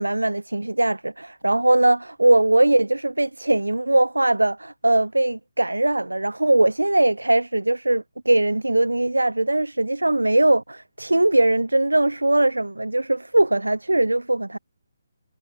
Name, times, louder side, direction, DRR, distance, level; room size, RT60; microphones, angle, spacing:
voice 1, 0.0-14.6, right 2 dB, 90° right, 4.0 m, -20 dB
figure-of-eight pair, 145°, 0 cm